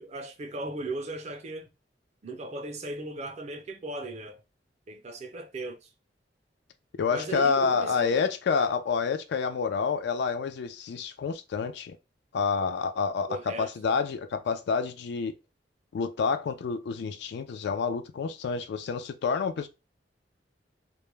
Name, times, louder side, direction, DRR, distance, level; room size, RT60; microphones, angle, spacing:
voice 1, 0.0-1.7 2.2-4.4 4.9-5.9 7.1-8.2 13.3-13.7, right 2 dB, 40° right, 0.5 m, -37 dB
voice 2, 7.0-12.0 12.3-15.3 15.9-19.7, left 5 dB, 65° left, 0.3 m, -28 dB
2.2 x 2.0 x 3.0 m
head